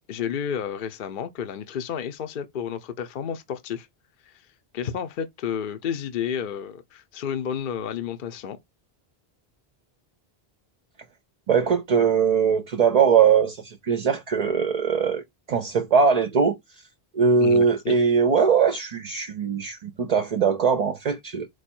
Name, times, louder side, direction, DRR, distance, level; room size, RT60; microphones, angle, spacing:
voice 1, 0.1-3.9 4.2-4.4 4.7-8.6 17.4-17.9, left 8 dB, 60° left, 0.7 m, -31 dB
voice 2, 11.5-15.2 15.5-16.5 17.1-21.5, right 6 dB, 50° right, 0.5 m, -21 dB
4.7 x 2.2 x 4.3 m
omnidirectional pair, 1.0 m